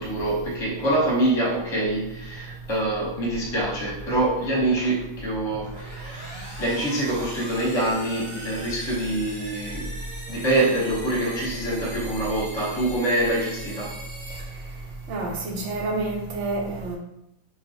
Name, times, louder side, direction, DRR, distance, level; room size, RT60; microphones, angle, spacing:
voice 1, 0.0-9.8 10.3-13.9, right 1 dB, 25° left, -4 dB, 0.8 m, -25 dB
sound 1, 5.4-15.2, equal, 35° right, 0.9 m, -41 dB
voice 2, 15.1-17.0, right 2 dB, 65° right, 0 dB, 0.8 m, -28 dB
3.8 x 2.3 x 2.7 m, 0.83 s
omnidirectional pair, 1.5 m